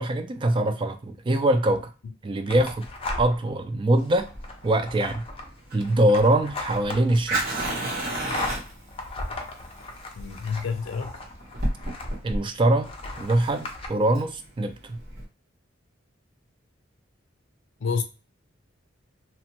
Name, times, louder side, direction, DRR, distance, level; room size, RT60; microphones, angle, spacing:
voice 1, 0.0-1.9 2.2-2.9 3.2-4.3 4.6-5.2 5.7-7.7 12.2-12.9 13.2-15.0, right 1 dB, 25° right, 0.3 m, -23 dB
sound 1, 2.5-3.5 4.0-12.4 12.8-13.9, left 2 dB, 30° left, 0.5 m, -37 dB
Fire, 4.2-15.2, right 1 dB, 50° right, 1.1 m, -33 dB
voice 2, 10.2-11.1 17.8-18.0, left 5 dB, 80° left, 0.5 m, -28 dB
2.9 x 2.1 x 2.9 m
head